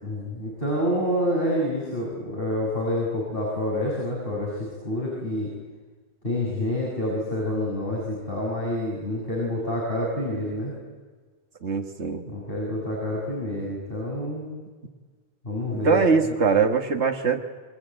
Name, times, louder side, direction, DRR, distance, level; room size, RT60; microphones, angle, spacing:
voice 1, 0.0-5.5 6.2-10.7 12.3-14.5 15.4-16.1 16.5-16.6, left 1 dB, 55° left, -4 dB, 7.2 m, -28 dB
voice 2, 11.6-12.2 15.7-17.4, right 5 dB, 85° right, 4 dB, 1.9 m, -22 dB
28.5 x 23.0 x 9.0 m, 1.4 s
omnidirectional pair, 1.1 m